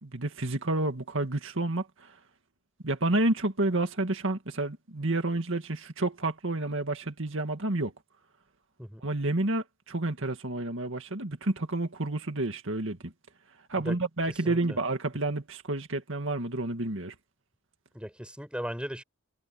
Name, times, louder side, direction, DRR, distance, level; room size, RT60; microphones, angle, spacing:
voice 1, 0.0-2.2 2.8-7.9 9.0-13.1 13.7-17.1, right 2 dB, 65° right, 2.1 m, -30 dB
voice 2, 14.4-14.8 17.9-19.0, equal, 5° right, 4.9 m, -37 dB
head